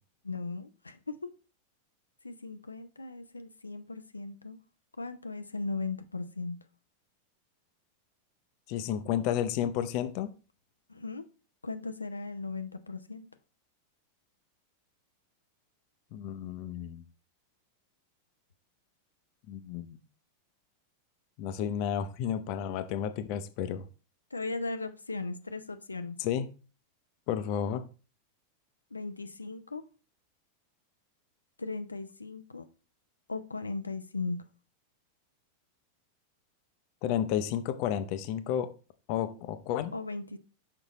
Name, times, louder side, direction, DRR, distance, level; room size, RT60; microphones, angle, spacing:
voice 1, 0.2-1.2 2.2-4.6 5.0-6.6 10.9-11.2 11.6-13.3 24.3-26.2 28.9-29.8 31.6-32.7 33.3-34.4 39.9-40.4, left 3 dB, 80° left, 0.7 m, -37 dB
voice 2, 8.7-10.3 16.1-17.0 19.5-20.0 21.4-23.8 26.2-26.5 27.3-27.8 37.0-38.7 39.1-39.9, left 9 dB, 45° left, 0.9 m, -31 dB
6.6 x 5.9 x 4.1 m
figure-of-eight pair, 90°, 0 cm